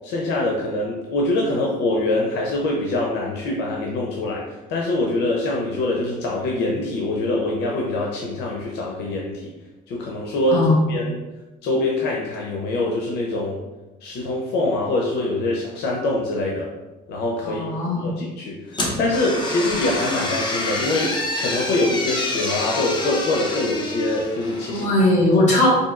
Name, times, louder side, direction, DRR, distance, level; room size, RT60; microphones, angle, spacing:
voice 1, 0.0-4.4 4.7-9.5 9.9-11.2 11.6-13.6 14.0-16.7 17.1-17.7 18.0-24.9, left 2 dB, 85° left, -2 dB, 0.6 m, -24 dB
voice 2, 17.4-18.1 24.7-25.7, left 2 dB, 45° left, -4 dB, 1.5 m, -19 dB
sound 1, 18.7-24.9, left 2 dB, 25° left, 0.7 m, -27 dB
4.3 x 2.7 x 2.3 m, 1.1 s
cardioid pair, 110°, 17 cm